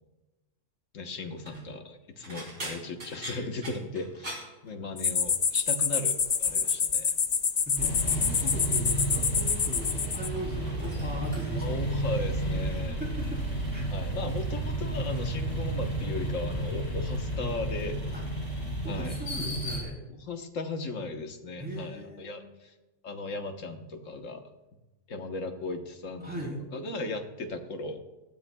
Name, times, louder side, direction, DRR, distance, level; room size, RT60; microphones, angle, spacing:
voice 1, 0.9-7.2 11.6-13.0 13.9-18.0 18.9-19.2 20.1-22.7 23.0-24.4 25.1-28.0, left 3 dB, 75° left, 5 dB, 1.5 m, -37 dB
sound 1, 1.3-1.7 2.2-5.3 5.5-5.9 6.2-6.8 7.4-8.9 9.1-10.0 10.2-11.8 12.6-12.9 13.3-15.4 15.7-16.2 16.6-16.8 18.1-18.2, right 1 dB, 60° right, 3.7 m, -46 dB
sound 2, 5.0-10.3, left 6 dB, 45° left, 0.5 m, -27 dB
voice 2, 7.7-12.1 12.5-13.4 13.7-13.8 18.1-18.2 18.8-20.0 21.6-22.5 26.2-26.6, right 1 dB, 5° right, -2 dB, 3.4 m, -39 dB
sound 3, 7.8-19.8, right 1 dB, 30° left, 5.1 m, -32 dB
17.5 x 13.0 x 2.3 m, 1.1 s
omnidirectional pair, 1.4 m